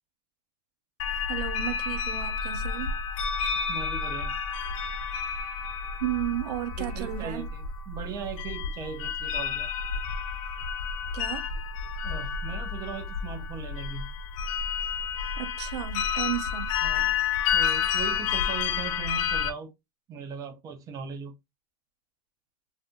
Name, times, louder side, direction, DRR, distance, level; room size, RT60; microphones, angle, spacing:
sound 1, 1.0-19.5, left 7 dB, 55° left, 0.4 m, -30 dB
voice 1, 1.3-3.0 6.0-7.5 11.1-11.5 15.4-16.7, right 13 dB, 90° right, 0.5 m, -33 dB
voice 2, 3.7-4.3 6.8-9.7 11.9-14.1 16.8-17.1 17.5-19.7 20.1-21.3, right 6 dB, 15° right, 0.4 m, -39 dB
2.6 x 2.4 x 2.2 m
supercardioid pair, 155°, 20 cm